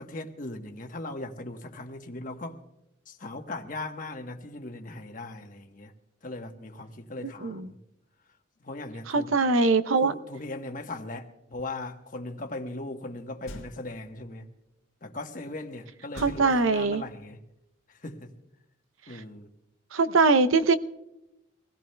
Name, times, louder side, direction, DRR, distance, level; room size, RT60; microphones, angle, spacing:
voice 1, 0.0-2.6 3.1-5.9 6.2-7.8 8.6-9.3 10.0-14.5 15.0-17.4 18.0-18.3 19.1-19.5, left 2 dB, 40° left, 1.1 m, -38 dB
voice 2, 7.4-7.7 9.1-10.1 16.2-17.0 19.9-20.8, right 3 dB, 85° right, 0.7 m, -22 dB
sound 1, 13.5-14.1 16.1-17.2, left 1 dB, 85° left, 1.6 m, -44 dB
25.0 x 17.0 x 2.2 m
head